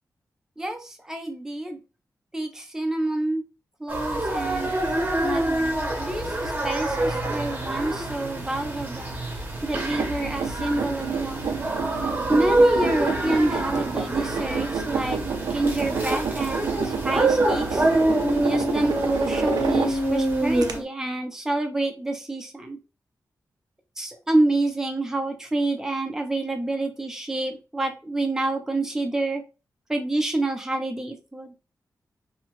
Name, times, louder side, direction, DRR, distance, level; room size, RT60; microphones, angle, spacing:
voice 1, 0.6-1.8 2.3-3.4 3.8-4.7 5.2-9.2 9.6-11.5 12.3-15.2 15.5-17.9 18.4-22.8 24.0-29.4 29.9-31.5, right 2 dB, 10° right, 4 dB, 0.6 m, -28 dB
sound 1, 3.9-20.8, right 1 dB, 30° right, 0.9 m, -26 dB
sound 2, 9.7-20.2 20.6-20.7, right 6 dB, 80° right, 0.4 m, -29 dB
2.8 x 2.2 x 3.0 m, 0.30 s
wide cardioid pair, 145°, 7 cm